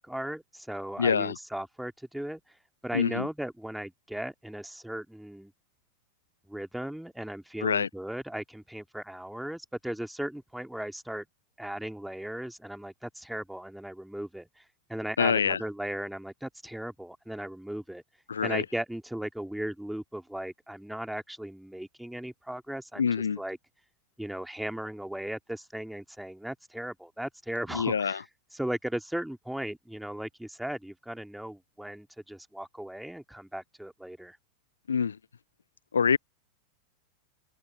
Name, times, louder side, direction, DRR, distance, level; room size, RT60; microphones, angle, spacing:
voice 1, 0.0-2.4 2.8-5.5 6.5-11.3 11.6-14.6 14.9-18.0 18.4-23.1 23.4-23.6 24.2-28.2 28.6-34.4, right 1 dB, ahead, 2.5 m, -37 dB
voice 2, 1.0-1.4 2.9-3.3 7.6-7.9 15.2-15.6 18.3-18.7 23.0-23.4 27.7-28.2 34.9-35.2 35.9-36.2, left 6 dB, 70° left, 0.4 m, -26 dB
figure-of-eight pair, 90°, 0 cm